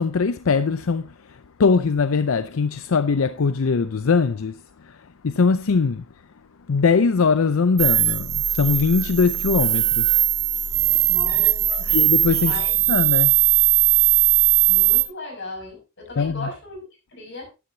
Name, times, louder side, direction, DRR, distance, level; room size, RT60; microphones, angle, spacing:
voice 1, 0.0-4.6 4.8-5.0 5.2-6.0 6.7-10.2 11.9-12.5 12.9-13.3 16.2-16.5, left 5 dB, 85° left, 0.5 m, -21 dB
sound 1, 7.8-15.0, right 13 dB, 50° right, 2.0 m, -19 dB
voice 2, 11.0-12.0 12.4-12.7 14.7-17.5, left 2 dB, 60° left, 6.3 m, -37 dB
13.0 x 11.0 x 2.8 m
head